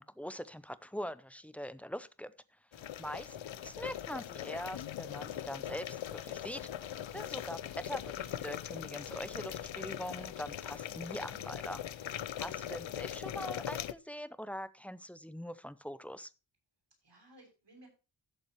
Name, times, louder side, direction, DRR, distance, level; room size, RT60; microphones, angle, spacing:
voice 1, 0.0-2.3 2.8-3.4 3.6-11.8 12.2-16.3, equal, 5° left, 15 dB, 0.7 m, -43 dB
sound 1, 2.7-13.9, left 10 dB, 85° left, 0.7 m, -41 dB
voice 2, 2.7-3.5 12.3-12.6 17.0-17.9, right 1 dB, 65° right, 2 dB, 7.3 m, -61 dB
15.5 x 7.2 x 3.1 m, 0.32 s
wide cardioid pair, 105°, 45 cm